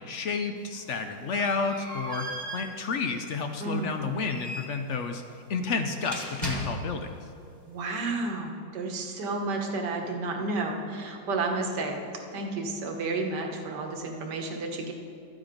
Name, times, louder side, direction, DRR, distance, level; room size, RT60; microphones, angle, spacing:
voice 1, 0.0-5.2 5.5-7.1, left 4 dB, 65° left, 6 dB, 0.7 m, -31 dB
sound 1, 0.6-7.2, right 1 dB, 10° left, 1.5 m, -39 dB
voice 2, 3.6-4.0 7.7-12.0 12.3-14.9, right 3 dB, 70° right, 2 dB, 1.8 m, -31 dB
13.0 x 9.7 x 5.1 m, 2.4 s
omnidirectional pair, 1.9 m